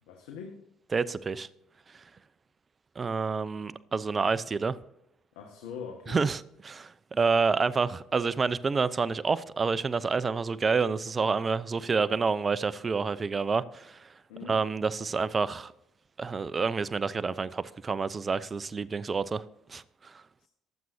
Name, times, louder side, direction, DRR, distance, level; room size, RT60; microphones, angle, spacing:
voice 1, 0.0-0.6 5.3-6.2 14.3-14.6 20.4-20.5, left 6 dB, 85° left, 1.7 m, -42 dB
voice 2, 0.9-1.5 1.9-2.0 3.0-4.8 6.1-6.4 6.7-14.1 14.5-15.7 16.2-20.2, right 4 dB, 35° right, 0.7 m, -28 dB
23.0 x 7.7 x 2.8 m
hypercardioid pair, 65°, 0 cm